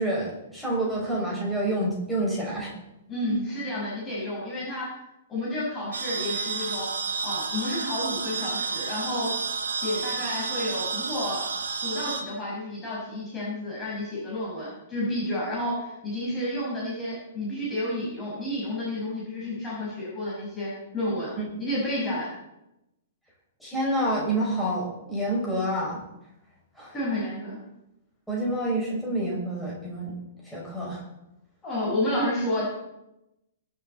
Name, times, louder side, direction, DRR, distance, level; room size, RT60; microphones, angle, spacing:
voice 1, 0.0-2.7 23.6-26.0 26.8-27.0 28.3-30.1 30.4-31.0, right 1 dB, ahead, -6 dB, 6.2 m, -28 dB
voice 2, 3.1-4.9 5.3-6.9 7.2-9.3 9.7-11.5 11.8-21.3 21.6-22.3 26.9-27.6 31.6-32.7, left 1 dB, 15° left, -8 dB, 5.9 m, -30 dB
sound 1, 5.9-12.2, right 5 dB, 70° right, 2.0 m, -31 dB
23.5 x 7.9 x 4.2 m, 0.88 s
figure-of-eight pair, 110°, 0 cm